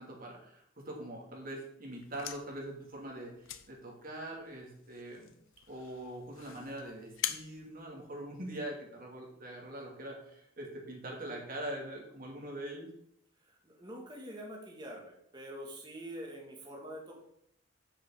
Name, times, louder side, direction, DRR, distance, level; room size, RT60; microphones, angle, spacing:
voice 1, 0.0-5.3 5.7-12.9, right 1 dB, 45° right, -1 dB, 2.4 m, -43 dB
sound 1, 1.9-8.7, left 11 dB, 85° left, 0.6 m, -45 dB
voice 2, 13.4-17.2, equal, 20° right, -2 dB, 2.0 m, -45 dB
6.5 x 5.7 x 7.0 m, 0.73 s
head